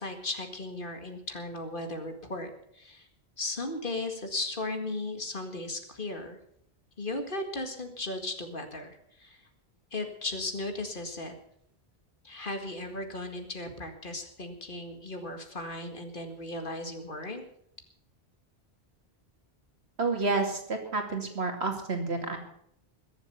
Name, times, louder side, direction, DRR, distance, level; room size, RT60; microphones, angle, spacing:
voice 1, 0.0-3.1 3.4-6.4 7.0-9.4 9.9-11.3 12.2-17.4, left 2 dB, 55° left, 6 dB, 2.1 m, -36 dB
voice 2, 20.0-22.4, right 3 dB, 75° right, 4 dB, 2.7 m, -29 dB
21.5 x 7.3 x 6.9 m, 0.70 s
omnidirectional pair, 1.1 m